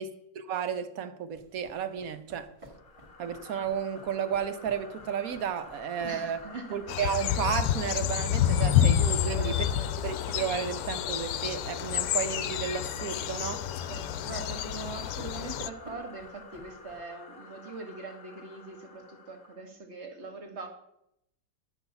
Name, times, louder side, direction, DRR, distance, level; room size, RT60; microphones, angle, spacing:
voice 1, 0.0-2.5 3.2-6.4 6.7-9.7 10.0-13.7, right 7 dB, 65° right, 1.2 m, -33 dB
sound 1, 1.3-17.0, equal, 20° right, 1.6 m, -53 dB
sound 2, 2.6-19.7, left 4 dB, 35° left, 0.9 m, -50 dB
voice 2, 6.0-6.8 9.3-9.9 13.9-20.7, right 3 dB, 40° right, 1.8 m, -42 dB
sound 3, 6.9-15.7, left 10 dB, 70° left, 1.0 m, -29 dB
10.5 x 6.0 x 7.0 m
omnidirectional pair, 1.8 m